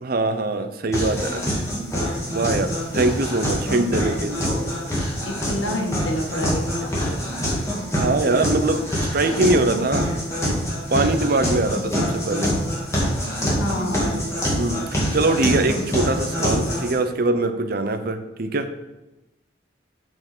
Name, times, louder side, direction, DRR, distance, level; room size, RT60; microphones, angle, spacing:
voice 1, 0.0-1.6 2.3-4.5 7.9-8.9 9.1-10.1 10.4-10.6 10.9-12.6 14.6-14.8 15.1-18.7, right 2 dB, 55° right, 8 dB, 0.7 m, -22 dB
sound 1, 0.9-16.9, equal, 15° left, 2.1 m, -25 dB
voice 2, 5.2-7.1 13.4-14.1, equal, 90° left, 1 dB, 1.5 m, -28 dB
7.7 x 4.7 x 6.1 m, 1.0 s
head